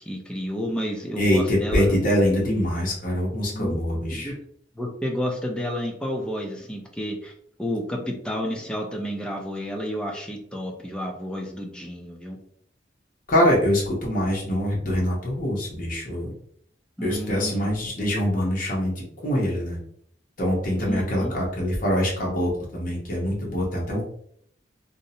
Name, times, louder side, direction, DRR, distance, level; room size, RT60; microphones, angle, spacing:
voice 1, 0.1-1.9 3.5-3.8 4.1-4.3 4.8-7.3 7.6-12.4 17.0-17.7 20.8-21.3, equal, 5° left, 1 dB, 0.4 m, -31 dB
voice 2, 1.2-4.3 13.3-16.3 17.0-19.8 20.4-24.0, equal, 50° left, -3 dB, 0.8 m, -24 dB
2.6 x 2.0 x 2.6 m, 0.66 s
head